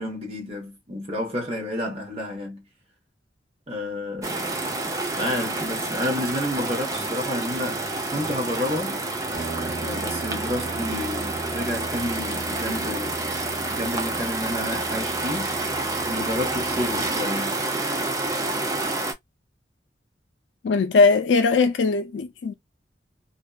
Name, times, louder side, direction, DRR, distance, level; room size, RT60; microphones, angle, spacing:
voice 1, 0.0-2.6 3.7-4.8 5.2-9.0 9.8-15.6 16.0-17.6, left 1 dB, 35° right, 1.0 m, -30 dB
sound 1, 4.2-19.1, right 2 dB, 20° right, 0.4 m, -28 dB
Guitar, 9.3-17.2, right 4 dB, 70° right, 1.3 m, -39 dB
voice 2, 20.6-22.5, left 4 dB, 90° left, 0.4 m, -20 dB
2.6 x 2.1 x 2.2 m
head